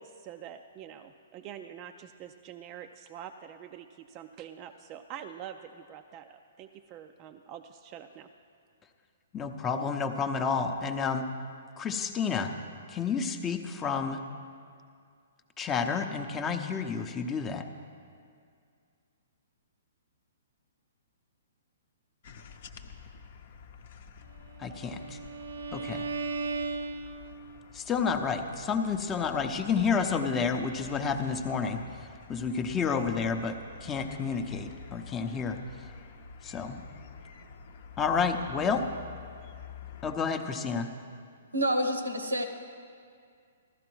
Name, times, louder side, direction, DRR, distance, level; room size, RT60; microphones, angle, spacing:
voice 1, 0.0-8.3, right 9 dB, 30° right, 6 dB, 0.4 m, -45 dB
voice 2, 9.3-11.3 11.8-12.5 12.9-14.2 15.6-17.6 24.6-25.2 25.7-26.0 27.7-35.6 36.4-36.8 38.0-38.8 40.0-40.9, left 5 dB, 20° left, 6 dB, 0.7 m, -30 dB
sound 1, 22.2-40.2, left 6 dB, 55° left, 0.8 m, -49 dB
Bowed string instrument, 24.5-27.7, right 4 dB, 75° right, 0.6 m, -36 dB
voice 3, 41.5-42.4, equal, 90° right, 7 dB, 1.0 m, -28 dB
15.5 x 13.0 x 3.1 m, 2.2 s
figure-of-eight pair, 120°, 0 cm